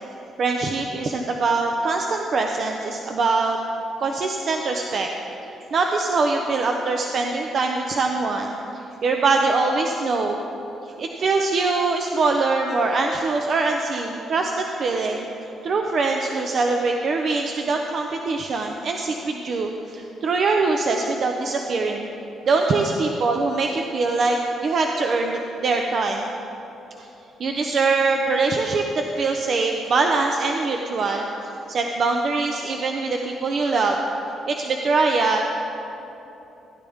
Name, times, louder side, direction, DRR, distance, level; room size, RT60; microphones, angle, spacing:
voice 1, 0.4-3.6 4.0-5.1 5.7-10.4 11.0-22.1 22.4-26.2 27.0-27.1 27.4-31.3 31.7-34.0 34.5-35.4, right 3 dB, 55° right, 2 dB, 0.7 m, -23 dB
16.0 x 10.0 x 3.6 m, 3.0 s
cardioid pair, 90°, 0 cm